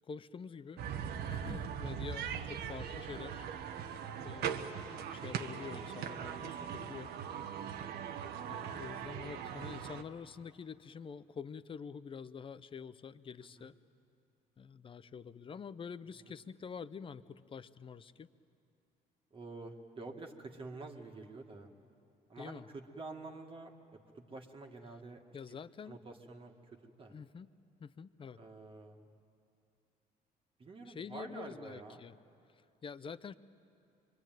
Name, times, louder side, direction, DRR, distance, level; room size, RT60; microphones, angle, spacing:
voice 1, 0.1-0.9 1.3-3.5 4.2-7.1 8.5-13.7 14.6-18.3 22.4-22.7 25.3-26.0 27.1-27.5 27.8-28.4 30.9-32.2 32.5-33.3, left 6 dB, 30° left, 15 dB, 0.7 m, -47 dB
sound 1, 0.8-10.0, right 8 dB, 75° right, 1.3 m, -40 dB
voice 2, 7.4-7.7 13.6-13.7 16.2-16.4 19.3-21.7 22.3-23.7 24.1-25.2 25.5-25.6 25.8-27.1 28.4-29.0 30.6-32.0, right 3 dB, 30° right, 2 dB, 1.9 m, -48 dB
24.5 x 23.5 x 9.2 m, 2.6 s
cardioid pair, 110°, 17 cm